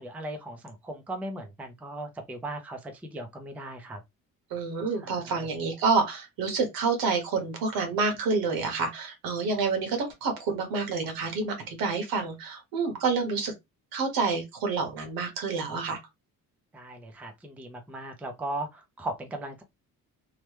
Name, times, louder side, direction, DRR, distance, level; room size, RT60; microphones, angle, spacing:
voice 1, 0.0-4.0 5.0-5.5 16.7-19.6, right 1 dB, 5° right, 0.4 m, -38 dB
voice 2, 4.5-13.5 13.9-16.0, right 4 dB, 80° right, 1.2 m, -28 dB
3.0 x 2.1 x 3.1 m
cardioid pair, 150°, 35 cm